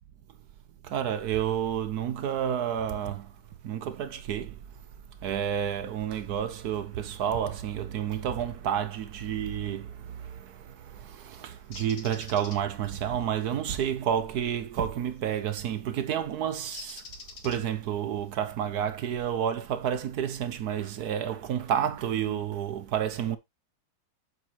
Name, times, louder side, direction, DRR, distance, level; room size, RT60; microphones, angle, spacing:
voice 1, 0.8-3.3 3.6-4.6 5.2-17.0 17.4-23.4, right 9 dB, 65° right, 1.0 m, -30 dB
Bird, 11.7-12.6 15.2-15.4 16.7-17.9, left 4 dB, 45° left, 1.6 m, -44 dB
8.0 x 6.6 x 3.0 m
omnidirectional pair, 2.2 m